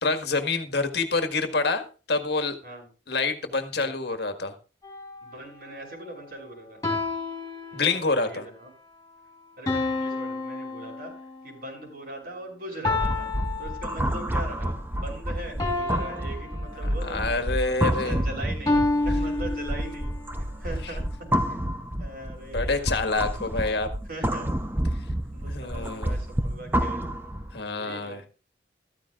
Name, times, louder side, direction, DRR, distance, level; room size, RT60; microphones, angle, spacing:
voice 1, 0.0-2.6 3.1-4.5 7.7-8.4 17.0-18.2 22.5-23.9 25.5-26.1 27.5-28.2, left 3 dB, 65° left, 7 dB, 1.7 m, -27 dB
sound 1, 4.8-5.3 6.8-8.3 9.7-11.5 12.8-14.5 15.6-17.2 18.7-20.3, left 2 dB, 20° left, 3.9 m, -30 dB
voice 2, 5.2-6.8 7.7-8.7 9.6-11.1 11.4-13.3 13.6-20.1 20.4-21.0 21.4-21.6 22.0-23.0 24.1-24.5 25.3-27.1 27.8-28.2, right 1 dB, 55° right, 0 dB, 7.2 m, -40 dB
sound 2, 12.9-27.6, equal, 10° right, 0.8 m, -29 dB
14.5 x 14.0 x 2.5 m, 0.34 s
head